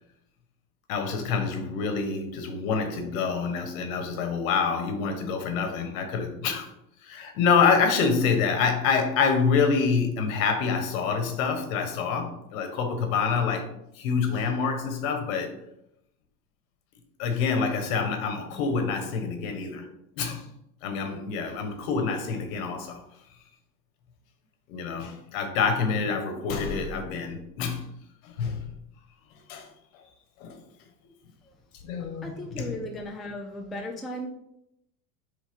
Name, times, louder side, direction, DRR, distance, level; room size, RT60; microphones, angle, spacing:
voice 1, 0.9-6.7 7.0-13.7 13.9-15.5 17.2-19.8 20.2-20.5 20.8-23.0 24.7-27.9 28.2-28.6 29.5-29.7 30.4-30.6 31.8-32.7, left 5 dB, 70° left, 1.4 m, -26 dB
voice 2, 32.2-34.3, left 1 dB, ahead, 0.3 m, -36 dB
4.8 x 3.7 x 5.2 m
supercardioid pair, 120°, 43 cm